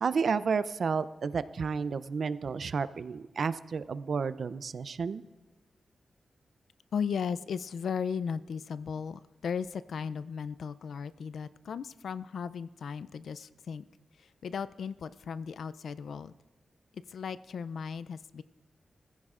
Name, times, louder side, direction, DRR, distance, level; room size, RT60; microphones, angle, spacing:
voice 1, 0.0-5.2, right 5 dB, 70° right, 14 dB, 0.4 m, -31 dB
voice 2, 6.9-13.8 14.2-16.3 16.9-18.4, left 6 dB, 85° left, 15 dB, 0.3 m, -36 dB
20.5 x 15.0 x 2.4 m, 1.2 s
wide cardioid pair, 85°, 0 cm